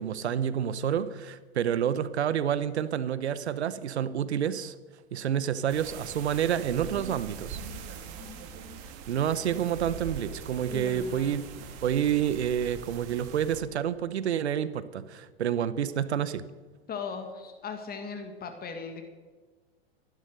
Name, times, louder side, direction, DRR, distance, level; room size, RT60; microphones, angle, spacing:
voice 1, 0.0-4.8 5.1-7.6 9.1-11.4 11.8-16.4, right 9 dB, 85° right, 15 dB, 0.9 m, -29 dB
sound 1, 5.7-13.6, right 6 dB, 50° right, 2.5 m, -42 dB
voice 2, 10.7-11.4 16.9-19.0, left 5 dB, 30° left, 6 dB, 1.9 m, -38 dB
14.5 x 11.5 x 6.7 m, 1.3 s
hypercardioid pair, 105°, 32 cm